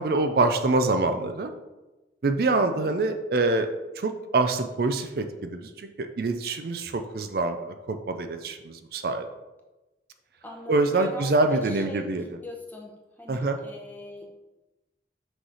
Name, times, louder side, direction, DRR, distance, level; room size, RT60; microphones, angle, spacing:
voice 1, 0.0-1.5 2.2-3.7 4.0-9.3 10.7-12.2 13.3-13.6, right 3 dB, 55° right, 7 dB, 0.4 m, -25 dB
voice 2, 2.6-2.9 10.4-12.9 13.2-14.3, left 1 dB, 10° left, 0 dB, 0.8 m, -41 dB
6.2 x 3.2 x 5.5 m, 1.1 s
head